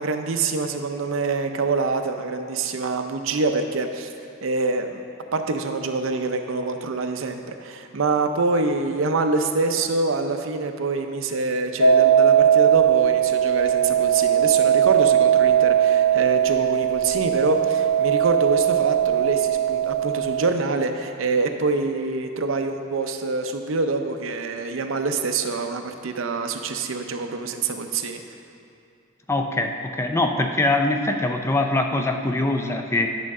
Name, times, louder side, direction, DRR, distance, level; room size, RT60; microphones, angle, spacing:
voice 1, 0.0-4.1 4.4-5.0 5.3-28.2, right 3 dB, 70° right, 6 dB, 0.6 m, -25 dB
sound 1, 11.8-20.4, right 9 dB, 85° left, 0.6 m, -19 dB
voice 2, 29.3-33.1, left 2 dB, 15° left, 4 dB, 0.4 m, -23 dB
10.5 x 6.5 x 3.6 m, 2.6 s
head